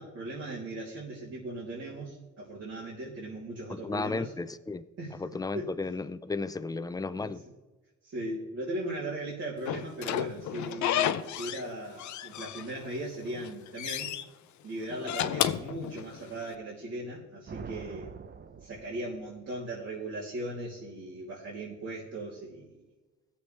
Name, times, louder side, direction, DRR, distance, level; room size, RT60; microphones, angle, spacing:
voice 1, 0.0-4.3 5.0-5.7 7.1-7.4 8.0-14.1 14.6-18.1 18.6-22.8, right 1 dB, 55° right, 3.1 m, -38 dB
voice 2, 3.7-4.8 5.2-7.4, left 3 dB, 10° left, 0.5 m, -34 dB
Slam / Squeak, 9.7-11.7 12.0-13.0 13.3-14.2 14.9-16.4, left 11 dB, 75° left, 0.6 m, -32 dB
sound 1, 17.5-19.6, right 6 dB, 35° right, 0.7 m, -45 dB
17.0 x 7.2 x 3.3 m
cardioid pair, 90°, 30 cm